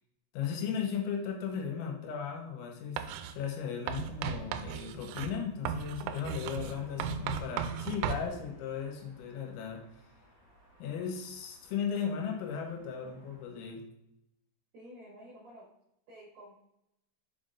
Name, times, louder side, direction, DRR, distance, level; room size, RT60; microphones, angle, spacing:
voice 1, 0.3-3.1 3.3-9.8 10.8-13.8, left 7 dB, 85° left, 1 dB, 3.7 m, -36 dB
Writing, 3.0-3.4 3.9-8.3, right 8 dB, 85° right, 3.1 m, -37 dB
sound 1, 6.0-13.4, equal, 50° left, 2.0 m, -60 dB
voice 2, 14.7-15.7 16.1-16.6, equal, 65° right, -6 dB, 2.7 m, -51 dB
7.0 x 5.7 x 2.6 m, 0.82 s
omnidirectional pair, 5.9 m